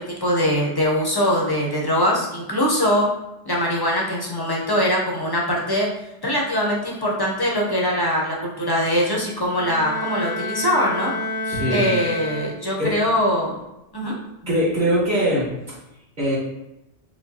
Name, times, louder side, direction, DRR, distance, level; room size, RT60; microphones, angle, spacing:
voice 1, 0.0-3.1 3.5-5.9 6.2-11.1 11.7-13.6 13.9-14.2, equal, 30° left, -3 dB, 0.4 m, -22 dB
Bowed string instrument, 9.5-13.0, left 2 dB, 65° left, 0.7 m, -29 dB
voice 2, 11.5-11.9 12.8-12.9 14.4-15.8 16.2-16.4, equal, 40° right, -7 dB, 1.2 m, -22 dB
4.8 x 2.1 x 2.7 m, 0.90 s
omnidirectional pair, 1.2 m